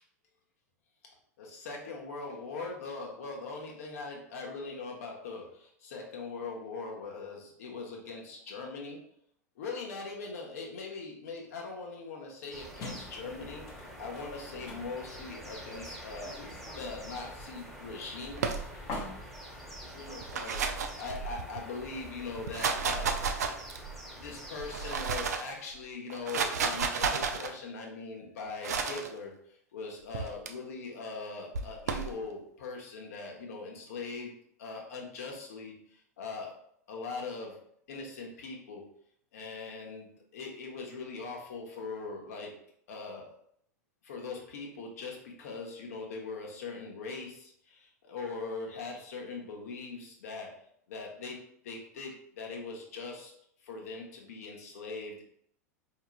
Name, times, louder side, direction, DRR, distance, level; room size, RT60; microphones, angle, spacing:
voice 1, 1.4-9.0 9.6-16.4 16.7-18.5 19.9-23.3 24.2-29.3 29.7-34.3 34.6-36.5 36.9-37.6 37.9-38.9 39.3-42.5 42.9-43.3 44.0-50.5 50.9-51.4 51.6-53.3 53.6-55.2, left 4 dB, 60° left, 0 dB, 1.0 m, -41 dB
sound 1, 12.5-25.1, equal, ahead, 1.0 m, -46 dB
sound 2, 12.8-20.5, left 2 dB, 35° left, 0.9 m, -47 dB
sound 3, 18.4-19.0 20.1-21.6 22.3-24.0 24.6-25.5 26.1-27.5 28.6-29.1 30.1-30.5 31.5-32.1, right 5 dB, 70° right, 0.4 m, -32 dB
4.6 x 2.9 x 2.3 m, 0.69 s
figure-of-eight pair, 90°, 9 cm